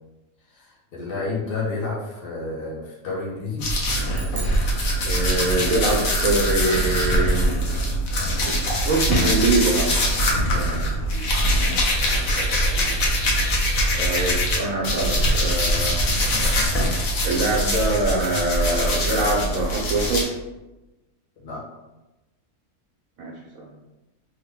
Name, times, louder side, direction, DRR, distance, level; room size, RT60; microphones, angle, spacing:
voice 1, 0.5-3.7 10.5-11.3 12.3-13.0 13.5-13.7 21.4-21.6, left 3 dB, 50° left, -5 dB, 0.8 m, -32 dB
sound 1, 3.6-14.6 14.8-20.2, equal, 70° left, 1.2 m, -22 dB
sound 2, 4.1-5.8, right 4 dB, 90° right, 1.2 m, -41 dB
voice 2, 5.0-7.5 8.4-10.0 10.5-11.0 14.0-16.0 17.2-20.3 23.2-23.7, right 2 dB, 70° right, -3 dB, 1.0 m, -24 dB
3.3 x 2.2 x 3.5 m, 1.0 s
omnidirectional pair, 1.5 m